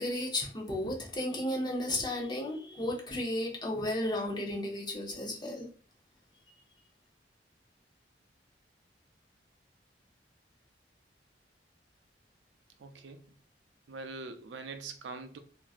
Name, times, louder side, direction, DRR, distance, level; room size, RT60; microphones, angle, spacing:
voice 1, 0.0-5.7, left 1 dB, 25° left, 0.7 m, -33 dB
voice 2, 12.8-13.4 13.9-15.4, right 3 dB, 70° right, 0.4 m, -43 dB
2.9 x 2.6 x 2.4 m
head